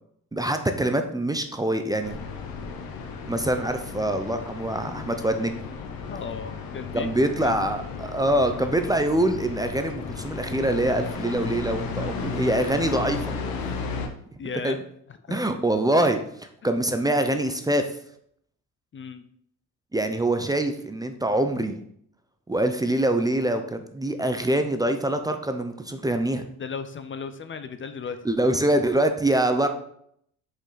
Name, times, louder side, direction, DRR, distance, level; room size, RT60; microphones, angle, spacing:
voice 1, 0.3-2.2 3.2-5.6 6.9-13.4 14.6-14.8 15.3-16.2 16.6-17.9 19.9-21.8 22.5-26.4 28.2-29.7, right 1 dB, 10° right, 7 dB, 0.5 m, -24 dB
sound 1, 2.0-14.1, left 5 dB, 90° left, 1.1 m, -34 dB
voice 2, 6.1-7.1 7.4-7.7 14.4-14.8 15.3-15.4 18.9-19.2 26.6-28.2, left 5 dB, 35° left, 10 dB, 0.5 m, -35 dB
6.3 x 5.2 x 4.0 m, 0.69 s
cardioid pair, 115°, 35 cm